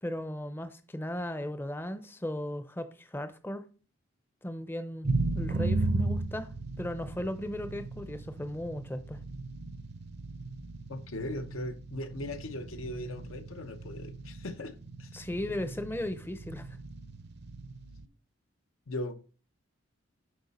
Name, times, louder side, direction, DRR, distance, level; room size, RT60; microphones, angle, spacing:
voice 1, 0.0-3.6 4.4-6.5 6.8-9.2 15.1-16.7, left 1 dB, 10° left, 0.5 m, -36 dB
sound 1, 5.0-18.0, right 2 dB, 55° right, 0.6 m, -36 dB
voice 2, 10.9-14.7 15.0-15.2 18.9-19.3, left 1 dB, 85° left, 0.9 m, -39 dB
7.8 x 5.5 x 4.1 m
head